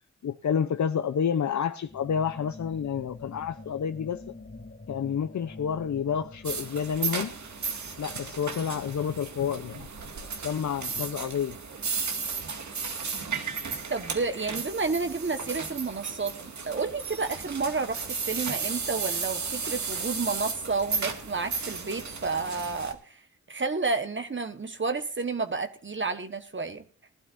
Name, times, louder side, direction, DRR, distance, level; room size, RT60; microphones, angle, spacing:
voice 1, 0.2-4.2 4.9-7.3 8.0-9.9 10.4-11.6, left 7 dB, 80° left, 0.7 m, -29 dB
sound 1, 1.8-8.6, left 2 dB, 40° left, 2.9 m, -47 dB
sound 2, 6.4-22.9, right 5 dB, 75° right, 2.3 m, -34 dB
voice 2, 13.9-23.2 23.5-26.8, right 4 dB, 40° right, 1.4 m, -31 dB
20.5 x 12.0 x 2.6 m
wide cardioid pair, 70°, 29 cm